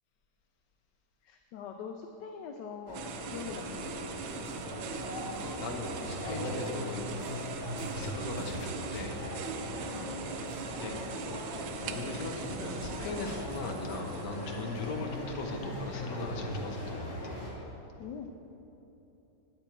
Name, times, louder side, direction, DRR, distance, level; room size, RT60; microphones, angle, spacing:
voice 1, 1.2-4.4 9.9-10.1 18.0-18.3, left 6 dB, 75° left, 4 dB, 1.1 m, -43 dB
sound 1, 2.9-17.5, left 1 dB, 20° left, 1.9 m, -40 dB
sound 2, 2.9-15.2, right 7 dB, 80° right, 1.3 m, -42 dB
sound 3, 3.3-17.5, equal, 35° right, 2.9 m, -44 dB
voice 2, 5.4-7.3 7.8-9.2 10.5-10.9 11.3-11.5 11.8-17.4, left 3 dB, 55° left, 1 dB, 1.3 m, -39 dB
9.7 x 8.5 x 4.5 m, 3.0 s
omnidirectional pair, 2.2 m